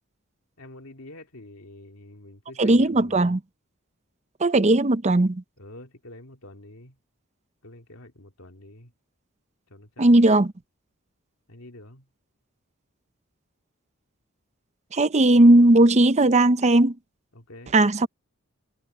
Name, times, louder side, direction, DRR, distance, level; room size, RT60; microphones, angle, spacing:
voice 1, 0.6-3.4 5.6-7.0 7.6-8.9 9.7-10.1 11.5-12.1 17.3-17.8, left 1 dB, 85° left, 2.5 m, -46 dB
voice 2, 2.6-3.4 4.4-5.4 10.0-10.5 14.9-17.0 17.7-18.1, right 2 dB, 35° right, 0.7 m, -17 dB
head